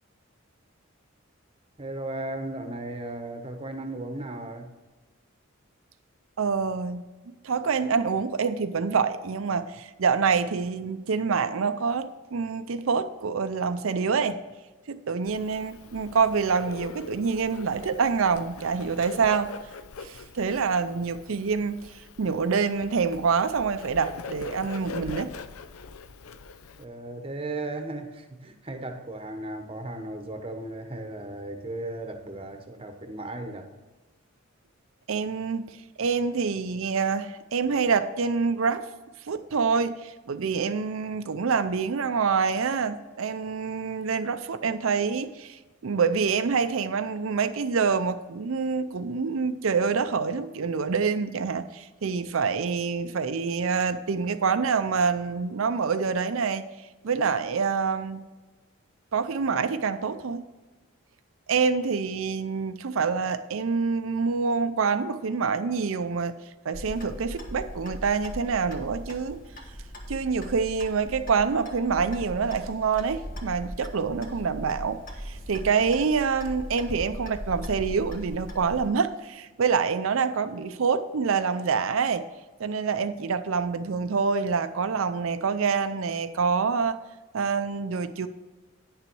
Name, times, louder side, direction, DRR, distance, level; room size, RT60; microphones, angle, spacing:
voice 1, 1.8-4.8 26.8-33.7, right 2 dB, 25° right, 1.0 m, -36 dB
voice 2, 6.4-7.0 7.4-14.4 14.9-19.5 20.0-25.3 35.1-38.8 39.3-56.7 57.0-58.3 59.1-60.4 61.5-66.3 66.6-69.4 70.1-82.3 82.6-87.0 87.3-88.3, right 5 dB, 70° right, 0.5 m, -26 dB
Bird, 15.2-26.8, left 4 dB, 90° left, 0.6 m, -42 dB
Clock, 66.7-78.9, equal, 40° left, 1.3 m, -39 dB
9.6 x 6.8 x 4.6 m
head